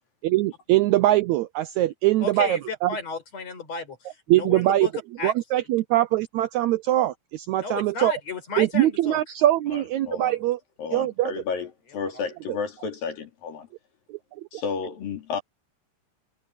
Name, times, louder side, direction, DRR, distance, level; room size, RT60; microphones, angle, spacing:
voice 1, 0.2-2.9 4.3-4.9 5.2-8.1 8.6-10.6 10.9-11.3 14.1-14.2 14.5-14.6, right 15 dB, 90° right, 1.6 m, -22 dB
voice 2, 2.2-4.9 5.2-5.3 7.6-9.2, left 4 dB, 50° left, 6.3 m, -33 dB
voice 3, 9.7-10.4 10.8-13.7 14.5-15.4, left 5 dB, 90° left, 4.9 m, -32 dB
omnidirectional pair, 3.9 m